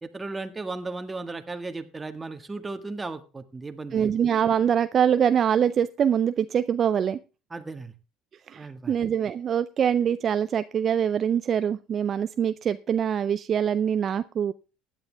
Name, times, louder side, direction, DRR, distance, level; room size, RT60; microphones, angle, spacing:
voice 1, 0.0-4.1 7.5-7.9 8.6-8.9, right 3 dB, 20° right, 8 dB, 1.7 m, -35 dB
voice 2, 3.9-7.2 8.5-14.5, right 8 dB, 45° right, 13 dB, 0.5 m, -24 dB
16.0 x 10.5 x 3.4 m, 0.32 s
supercardioid pair, 85°, 0 cm